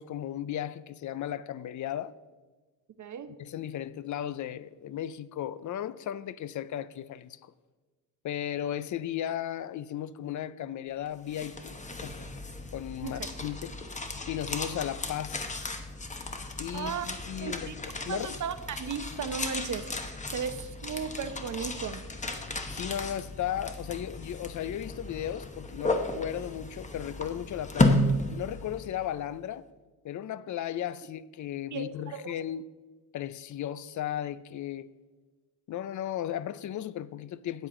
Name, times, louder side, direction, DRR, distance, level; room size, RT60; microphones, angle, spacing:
voice 1, 0.0-2.2 3.4-7.5 8.2-11.8 12.0-12.3 12.7-13.7 14.3-15.5 16.6-17.7 18.0-18.4 22.7-28.0 28.3-29.7 30.0-32.6 33.1-34.9 35.7-37.7, left 11 dB, 50° left, 0.5 m, -35 dB
voice 2, 3.0-3.4 13.0-13.3 16.7-17.7 18.1-22.0 31.7-32.4, right 6 dB, 45° right, 0.8 m, -36 dB
sound 1, 11.1-29.1, left 2 dB, 20° left, 0.9 m, -33 dB
13.0 x 8.8 x 3.7 m
cardioid pair, 110°, 40 cm